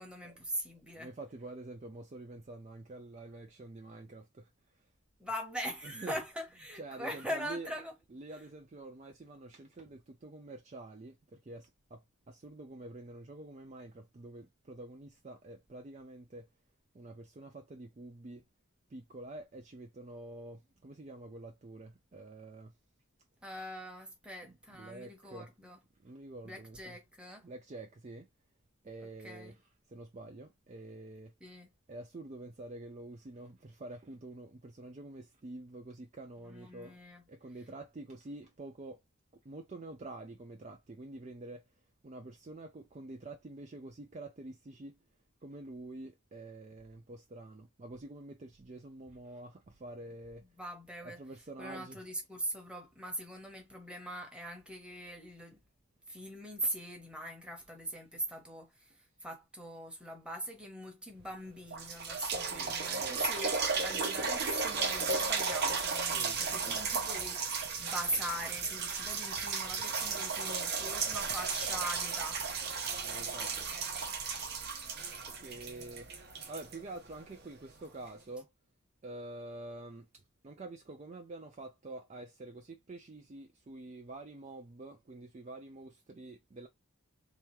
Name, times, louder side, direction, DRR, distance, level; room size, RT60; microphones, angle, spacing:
voice 1, 0.0-1.1 5.2-7.9 23.4-25.8 26.4-27.5 29.2-29.6 31.4-31.7 36.4-37.2 50.6-51.2 51.6-55.6 56.1-72.4, equal, 5° right, 1.0 m, -41 dB
voice 2, 1.0-4.5 5.8-6.2 6.8-7.7 8.1-16.5 16.9-18.4 18.9-22.7 24.4-25.5 26.0-27.0 27.4-28.3 28.8-29.6 29.9-31.3 31.9-37.0 37.3-39.0 39.4-41.6 42.0-45.0 45.4-50.4 51.0-52.0 62.5-63.3 66.1-66.8 73.0-73.7 75.3-76.1 76.5-78.5 79.0-86.7, right 2 dB, 30° right, 0.4 m, -47 dB
sound 1, 61.2-61.3 61.7-77.4 78.1-78.2, right 5 dB, 50° right, 0.8 m, -35 dB
3.3 x 3.0 x 3.1 m
head